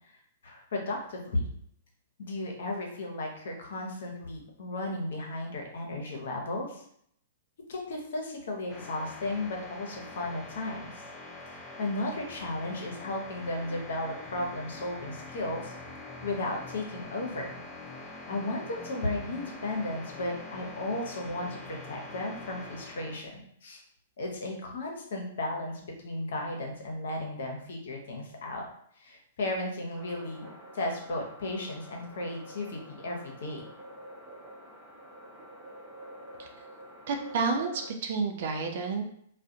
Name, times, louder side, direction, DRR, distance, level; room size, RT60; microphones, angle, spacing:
voice 1, 0.4-1.5 2.2-6.8 7.7-10.9 11.5-15.7 16.2-17.6 18.0-23.8 24.2-28.6 29.0-30.5 30.7-33.6, left 2 dB, 65° left, 1 dB, 0.6 m, -35 dB
sound 1, 8.7-23.2, left 2 dB, 20° left, 0.4 m, -44 dB
sound 2, 29.9-37.9, right 1 dB, 30° right, 0.8 m, -48 dB
voice 2, 37.1-39.0, right 4 dB, 55° right, 4 dB, 0.4 m, -30 dB
2.3 x 2.1 x 2.6 m, 0.67 s
figure-of-eight pair, 110°, 0 cm